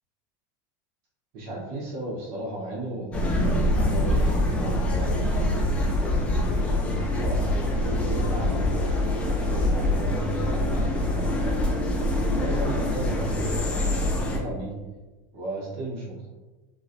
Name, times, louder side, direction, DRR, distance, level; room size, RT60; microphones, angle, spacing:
voice 1, 1.3-7.4 7.8-11.8 12.3-14.7 15.3-16.3, right 2 dB, 55° right, -4 dB, 0.9 m, -36 dB
sound 1, 3.1-14.4, left 1 dB, 10° left, 0.5 m, -24 dB
4.5 x 2.1 x 2.5 m, 1.2 s
supercardioid pair, 150°, 10 cm